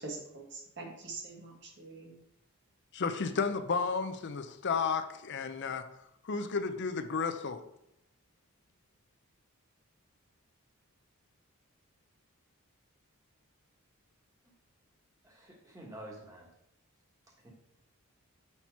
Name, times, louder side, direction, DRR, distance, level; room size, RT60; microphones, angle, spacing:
voice 1, 0.0-2.2, right 3 dB, 55° right, 0 dB, 1.5 m, -44 dB
voice 2, 2.9-5.9 6.2-7.6, left 5 dB, 55° left, 9 dB, 0.5 m, -32 dB
voice 3, 15.2-16.5 17.3-17.5, right 1 dB, 15° right, -1 dB, 1.3 m, -49 dB
5.8 x 4.3 x 4.6 m, 0.81 s
head